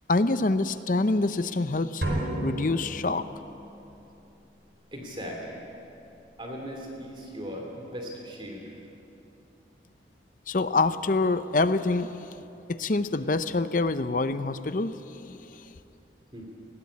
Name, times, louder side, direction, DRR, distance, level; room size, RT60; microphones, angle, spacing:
voice 1, 0.1-2.0 2.4-3.3 10.5-12.3 12.7-15.6, left 3 dB, 45° left, 12 dB, 0.7 m, -26 dB
sound 1, 2.0-3.7, right 1 dB, 75° right, 4.3 m, -32 dB
voice 2, 4.9-5.6 6.4-8.8 16.3-16.4, equal, 25° right, 0 dB, 2.7 m, -38 dB
20.0 x 16.5 x 8.6 m, 2.9 s
head